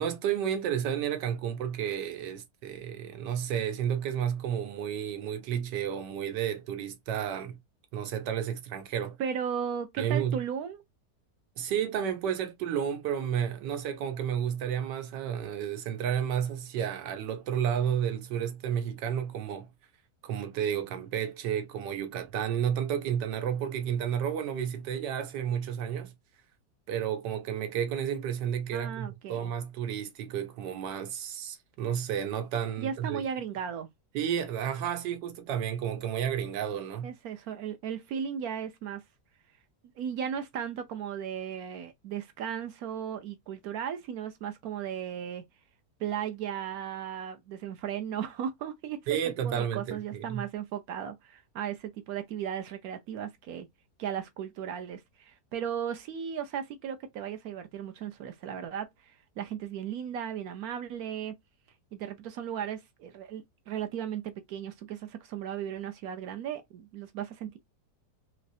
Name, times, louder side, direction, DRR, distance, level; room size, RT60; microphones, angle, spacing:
voice 1, 0.0-7.6 7.9-9.2 10.0-10.4 11.6-19.7 20.2-26.1 26.9-33.2 34.1-37.1 49.1-50.4, right 9 dB, 85° right, 1.3 m, -31 dB
voice 2, 9.2-10.8 28.7-29.5 32.8-33.9 37.0-39.0 40.0-45.4 46.0-49.0 49.4-53.7 54.0-61.3 61.9-67.6, right 8 dB, 70° right, 1.0 m, -36 dB
3.2 x 3.1 x 2.6 m
omnidirectional pair, 1.8 m